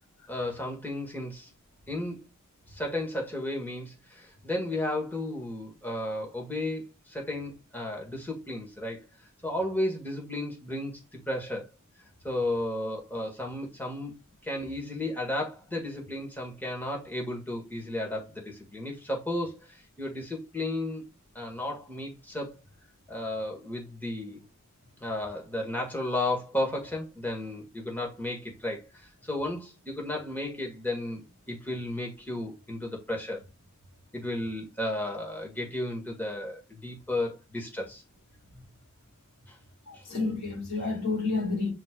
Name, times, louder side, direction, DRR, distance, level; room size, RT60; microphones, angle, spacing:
voice 1, 0.3-1.5 1.9-2.2 2.7-9.0 9.4-10.9 11.3-11.7 12.2-14.1 14.4-21.0 21.4-22.5 23.1-24.4 25.0-33.4 34.1-38.0 39.5-39.6 39.9-40.0, left 1 dB, 10° left, 1.8 m, -33 dB
voice 2, 39.9-41.7, left 3 dB, 85° left, 4.1 m, -30 dB
8.1 x 4.0 x 3.7 m
head